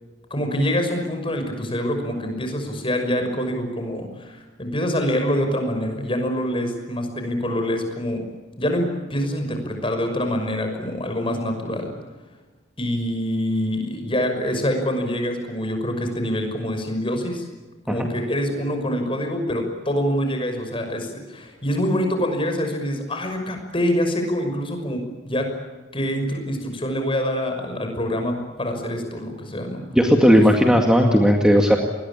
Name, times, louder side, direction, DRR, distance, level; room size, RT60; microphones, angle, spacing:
voice 1, 0.3-8.2 8.6-11.9 12.8-17.5 17.8-25.5 25.9-29.8 30.3-30.4, equal, 30° left, 5 dB, 5.9 m, -25 dB
voice 2, 29.9-31.8, equal, 5° right, 2 dB, 2.1 m, -15 dB
28.5 x 21.5 x 8.7 m, 1.3 s
head